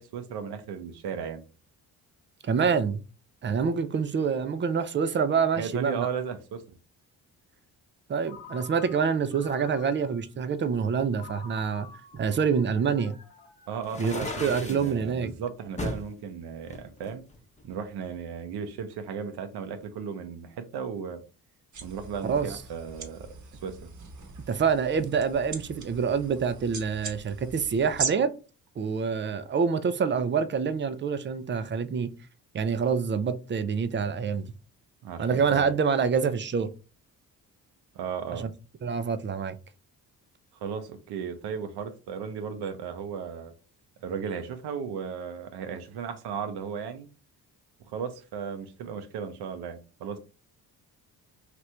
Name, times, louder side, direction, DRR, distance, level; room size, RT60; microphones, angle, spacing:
voice 1, 0.0-1.4 5.6-6.6 13.7-17.2 17.6-21.2 21.8-23.2 23.6-23.9 35.0-35.8 37.9-38.5 40.6-43.5 44.0-47.1 47.9-50.2, right 7 dB, 75° right, 0.7 m, -35 dB
voice 2, 2.4-3.0 3.4-6.1 8.1-11.9 12.1-13.1 14.0-15.3 22.3-22.6 24.5-28.3 28.8-32.1 32.5-34.5 35.2-36.7 38.3-38.5 38.8-39.5, right 6 dB, 30° right, 0.4 m, -26 dB
Ringtone, 8.2-10.3 11.2-14.5, left 5 dB, 70° left, 1.0 m, -49 dB
sound 1, 13.8-14.9 15.8-16.1 16.7-17.8, left 2 dB, 15° left, 0.8 m, -35 dB
sound 2, 21.7-28.1, right 5 dB, 45° right, 1.0 m, -39 dB
2.9 x 2.5 x 3.2 m
supercardioid pair, 65°, 40 cm